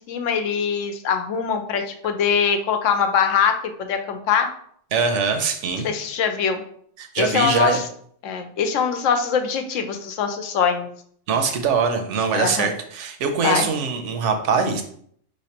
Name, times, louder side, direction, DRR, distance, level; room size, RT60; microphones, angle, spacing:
voice 1, 0.0-4.5 5.8-6.6 7.2-7.8 8.2-10.9 12.3-12.7 13.4-13.7, left 6 dB, 75° left, 6 dB, 0.9 m, -22 dB
voice 2, 4.9-5.9 7.0-7.8 11.3-14.8, right 5 dB, 70° right, 6 dB, 0.9 m, -22 dB
5.2 x 3.2 x 2.8 m, 0.63 s
omnidirectional pair, 1.4 m